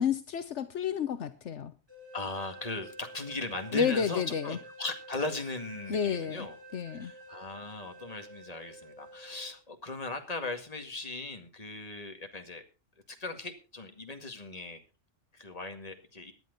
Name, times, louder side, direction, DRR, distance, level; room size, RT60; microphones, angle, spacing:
voice 1, 0.0-1.7 3.7-4.6 5.9-6.5 6.7-7.1, left 7 dB, 75° left, 11 dB, 1.2 m, -30 dB
sound 1, 1.9-9.5, right 2 dB, 20° right, 5.6 m, -49 dB
voice 2, 2.1-6.6 6.9-12.6 13.1-14.8 15.3-16.3, left 3 dB, 30° left, 6 dB, 2.1 m, -38 dB
18.0 x 10.5 x 3.9 m, 0.32 s
omnidirectional pair, 1.2 m